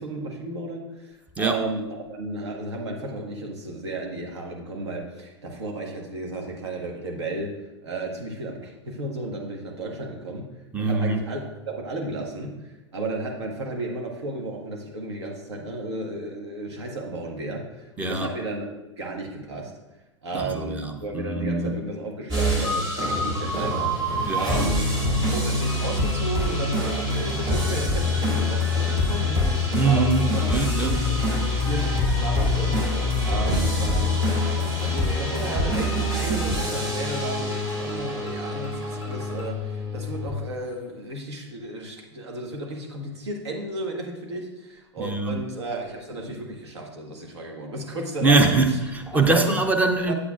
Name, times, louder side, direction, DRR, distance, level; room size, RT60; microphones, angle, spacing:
voice 1, 0.0-7.5 7.8-10.5 10.8-12.5 12.9-18.7 19.0-19.7 20.2-23.9 24.3-24.9 25.3-30.5 30.8-32.8 33.2-48.5 49.1-49.6 50.1-50.2, right 2 dB, 65° right, 1 dB, 1.4 m, -33 dB
voice 2, 10.7-11.2 18.0-18.4 20.3-21.8 24.3-24.7 29.7-31.0 31.3-31.4 45.0-45.4 48.2-50.1, right 3 dB, 10° right, 5 dB, 0.7 m, -23 dB
sound 1, 22.3-40.3, left 2 dB, 30° right, 2.5 m, -25 dB
8.3 x 8.2 x 2.4 m, 1.0 s
figure-of-eight pair, 100°, 15 cm